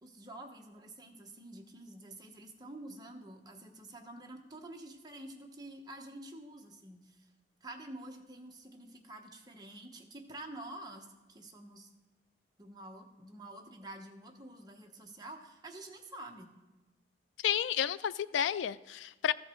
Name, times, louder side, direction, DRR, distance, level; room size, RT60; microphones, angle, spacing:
voice 1, 0.0-7.3 7.6-11.9 12.6-16.5, right 1 dB, 20° right, 2 dB, 1.0 m, -48 dB
voice 2, 17.4-19.3, left 9 dB, 80° left, 16 dB, 0.3 m, -31 dB
13.5 x 6.6 x 4.4 m, 1.2 s
head